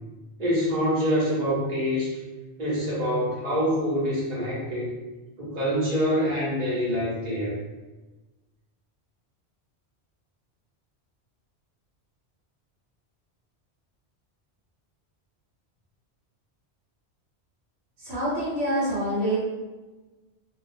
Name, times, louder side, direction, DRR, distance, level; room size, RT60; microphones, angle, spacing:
voice 1, 0.4-2.1 2.6-4.9 5.4-7.5, equal, 40° right, -7 dB, 0.9 m, -25 dB
voice 2, 18.0-19.4, right 1 dB, 70° right, -7 dB, 1.0 m, -26 dB
2.4 x 2.2 x 2.5 m, 1.2 s
omnidirectional pair, 1.1 m